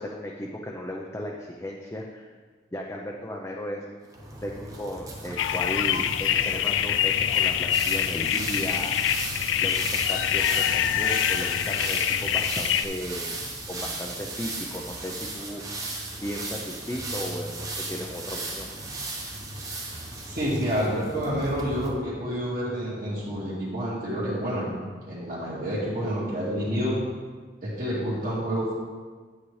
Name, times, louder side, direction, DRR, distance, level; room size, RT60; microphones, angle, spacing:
voice 1, 0.0-2.3 2.7-4.1 4.4-9.0 9.6-13.3 13.7-15.6 16.2-18.7, left 1 dB, 15° left, 0 dB, 0.5 m, -35 dB
sound 1, 4.1-21.9, right 2 dB, 20° right, 1.0 m, -36 dB
sound 2, 5.4-12.8, left 9 dB, 90° left, 0.4 m, -25 dB
voice 2, 20.3-24.8 25.1-27.0 27.6-28.7, equal, 50° right, -7 dB, 2.0 m, -28 dB
8.7 x 8.4 x 3.2 m, 1.5 s
head